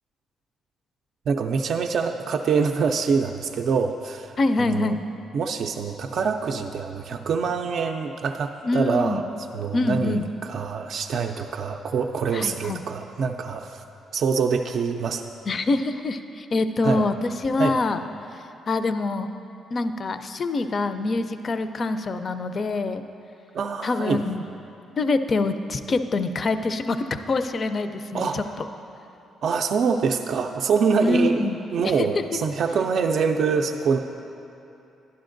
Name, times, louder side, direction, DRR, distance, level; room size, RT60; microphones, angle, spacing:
voice 1, 1.3-4.3 4.6-4.9 5.3-9.2 9.5-13.8 14.1-15.2 16.8-17.0 17.6-17.8 23.5-24.2 28.1-28.4 29.4-34.0, right 5 dB, 65° right, 4 dB, 0.4 m, -25 dB
voice 2, 4.4-5.0 8.6-9.2 9.7-10.3 12.3-12.8 15.5-18.0 18.7-19.3 19.7-23.0 23.8-24.4 25.0-28.7 31.0-31.6 31.8-32.1, left 3 dB, 45° left, 10 dB, 0.4 m, -25 dB
11.5 x 11.0 x 2.6 m, 2.8 s
cardioid pair, 90°, 0 cm